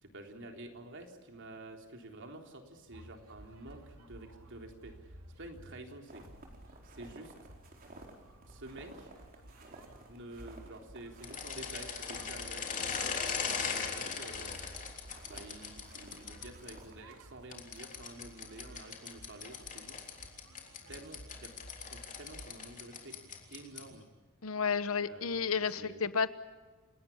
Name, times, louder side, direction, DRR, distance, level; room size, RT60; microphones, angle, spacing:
voice 1, 0.0-6.2 6.8-7.3 8.5-9.1 10.1-13.2 13.6-14.5 15.3-20.0 20.9-21.5 21.9-23.2 23.5-24.1 25.0-26.0, right 2 dB, 55° right, 3 dB, 3.7 m, -49 dB
sound 1, 2.9-22.5, right 1 dB, 80° right, 2.8 m, -55 dB
sound 2, 6.1-17.0, right 2 dB, 40° right, 4.6 m, -55 dB
sound 3, 11.2-16.7 17.5-24.0, left 6 dB, 35° left, 3.6 m, -39 dB
voice 2, 24.4-26.3, left 5 dB, 70° left, 13 dB, 1.1 m, -31 dB
29.5 x 18.0 x 7.4 m, 1.4 s
head